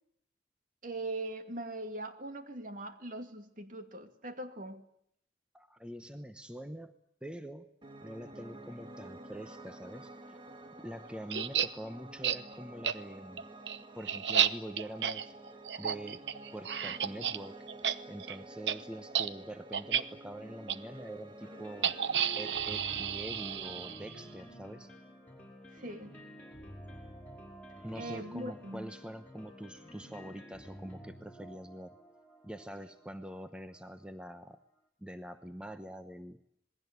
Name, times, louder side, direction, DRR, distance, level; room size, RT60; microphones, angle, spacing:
voice 1, 0.8-4.8 25.7-26.2 27.9-28.9 30.8-30.9, right 2 dB, 50° right, 7 dB, 2.4 m, -41 dB
voice 2, 5.5-6.9 7.2-7.7 8.0-10.4 10.8-13.5 13.9-15.4 15.8-17.6 18.1-22.0 22.4-24.9 27.8-32.0 32.4-34.6 35.0-36.4, right 1 dB, 5° right, 9 dB, 0.9 m, -45 dB
Piano, 7.8-23.9, right 1 dB, 25° right, 2.0 m, -50 dB
sound 1, 11.3-11.7 12.2-12.4 12.8-12.9 13.4-17.4 17.7-17.9 18.2-18.4 18.7-18.8 19.1-19.3 19.7-20.0 20.7-20.8 21.8-24.2, right 9 dB, 90° right, 0.9 m, -31 dB
sound 2, 21.4-34.3, equal, 10° left, 5.6 m, -51 dB
27.0 x 20.5 x 8.2 m, 0.72 s
head